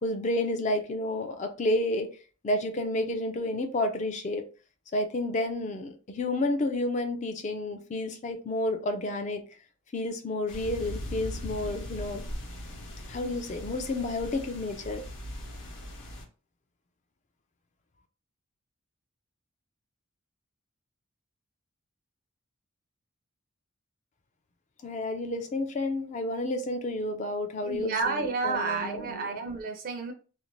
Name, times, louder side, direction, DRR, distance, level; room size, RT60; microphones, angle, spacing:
voice 1, 0.0-2.1 2.4-4.5 4.9-9.4 9.9-12.2 13.1-15.0 24.8-29.4, left 1 dB, 35° left, 6 dB, 0.3 m, -30 dB
sound 1, 10.5-16.2, left 1 dB, 55° left, 0.7 m, -39 dB
voice 2, 27.6-30.1, right 4 dB, 40° right, 3 dB, 0.4 m, -31 dB
2.5 x 2.0 x 3.0 m, 0.36 s
head